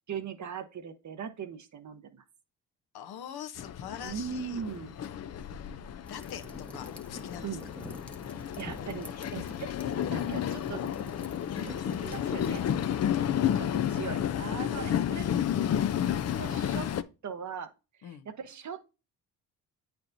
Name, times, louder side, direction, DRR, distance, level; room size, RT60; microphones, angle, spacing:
voice 1, 0.1-2.2 4.0-4.9 7.4-7.7 8.6-9.7 10.1-10.9 11.5-12.6 13.6-15.3 16.4-16.9 17.2-17.7 18.0-19.0, right 7 dB, 45° right, 0.8 m, -39 dB
voice 2, 2.9-4.6 5.1-5.2 6.1-6.5 6.7-7.7 11.8-12.0 13.1-13.9 14.7-15.0 18.0-18.3, left 9 dB, 65° left, 0.8 m, -43 dB
Train, 3.6-17.0, left 10 dB, 40° left, 0.5 m, -32 dB
sound 1, 6.0-12.8, equal, 5° left, 0.8 m, -47 dB
8.4 x 4.5 x 2.6 m
cardioid pair, 70°, 40 cm